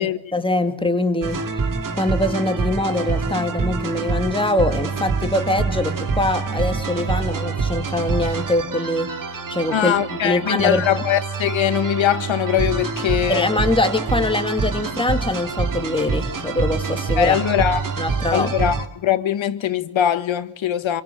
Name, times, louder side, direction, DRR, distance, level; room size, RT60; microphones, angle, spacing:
voice 1, 0.0-1.4 2.0-9.1 9.5-10.8 13.3-17.4 18.0-18.6, left 2 dB, 10° left, 2.4 m, -23 dB
sound 1, 1.2-18.8, right 4 dB, 40° right, 2.5 m, -26 dB
voice 2, 9.7-13.5 17.2-17.8 18.3-21.0, left 10 dB, 75° left, 1.7 m, -21 dB
28.0 x 23.0 x 7.9 m
wide cardioid pair, 175°, 47 cm